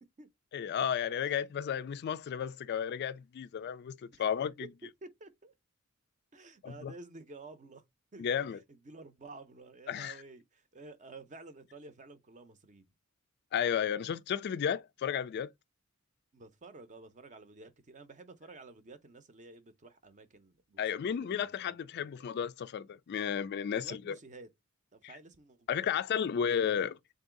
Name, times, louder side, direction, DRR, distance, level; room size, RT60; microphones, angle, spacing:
voice 1, 0.5-4.7 6.6-6.9 8.2-8.6 9.9-10.2 13.5-15.5 20.8-24.2 25.0-25.1 25.7-27.0, left 8 dB, 50° left, 0.3 m, -33 dB
voice 2, 5.0-5.5 6.3-7.8 8.1-8.3 8.7-12.9 16.3-22.3 23.7-24.5 24.9-25.9 26.6-26.9, right 3 dB, 35° right, 0.6 m, -52 dB
3.8 x 2.6 x 3.7 m
head